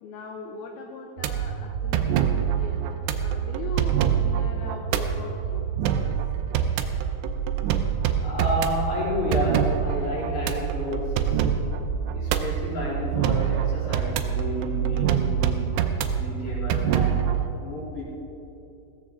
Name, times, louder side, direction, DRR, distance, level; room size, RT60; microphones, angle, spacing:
voice 1, 0.0-2.2 2.5-2.8 3.2-5.7 6.0-6.2, left 4 dB, 80° left, 1 dB, 2.3 m, -40 dB
sound 1, 1.2-17.5, right 8 dB, 85° right, 2.6 m, -25 dB
voice 2, 8.2-11.5 12.1-15.8 16.1-17.3 17.6-18.0, equal, 45° left, -6 dB, 4.8 m, -31 dB
16.5 x 14.5 x 3.7 m, 2.8 s
omnidirectional pair, 5.6 m